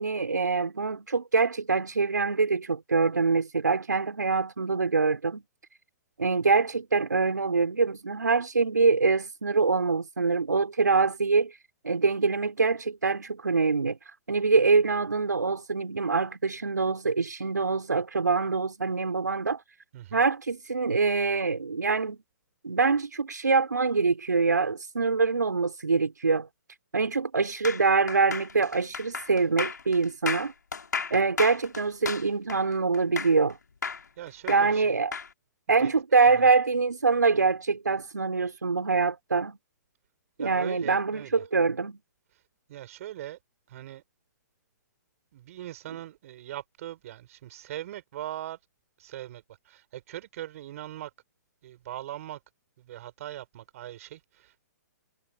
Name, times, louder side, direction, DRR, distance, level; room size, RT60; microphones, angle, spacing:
voice 1, 0.0-5.4 6.2-11.6 11.8-14.0 14.3-19.6 20.1-22.2 22.6-26.5 26.9-30.5 31.1-33.6 34.5-35.1 35.7-39.6 40.4-42.0, right 4 dB, 85° right, 4.1 m, -24 dB
voice 2, 19.9-20.3 34.2-35.0 35.7-35.9 36.4-36.5 40.4-41.4 42.7-43.4 43.7-44.0 45.3-48.6 49.0-51.1 51.6-52.4 52.8-54.7, right 13 dB, 55° right, 7.4 m, -40 dB
sound 1, 27.6-33.5 33.8-35.3, left 5 dB, 80° left, 7.4 m, -34 dB
hypercardioid pair, 125°, 9 cm